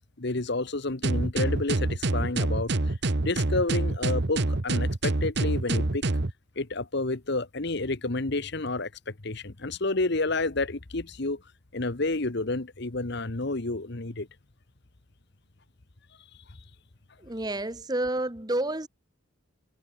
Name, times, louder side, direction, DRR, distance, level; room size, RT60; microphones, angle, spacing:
voice 1, 0.2-2.9 3.2-6.1 6.6-11.4 11.7-14.3, left 2 dB, 50° left, 1.2 m, -30 dB
sound 1, 1.0-6.3, right 2 dB, 50° right, 1.1 m, -26 dB
voice 2, 17.2-18.9, right 1 dB, 20° right, 1.2 m, -29 dB
head